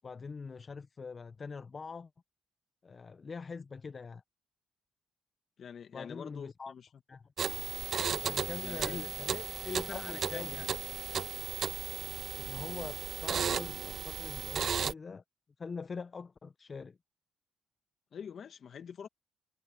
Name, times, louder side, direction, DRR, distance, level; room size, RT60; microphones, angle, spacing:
voice 1, 0.0-2.1 2.8-4.2 5.9-6.7 7.1-7.2 8.2-9.5 9.9-10.7 12.4-15.2 15.6-17.0, left 5 dB, 35° left, 0.7 m, -43 dB
voice 2, 5.6-6.9 8.6-9.1 9.6-10.8 18.1-19.1, left 7 dB, 55° left, 2.1 m, -44 dB
sound 1, 7.4-14.9, right 7 dB, 50° right, 0.5 m, -35 dB
cardioid pair, 90°, 0 cm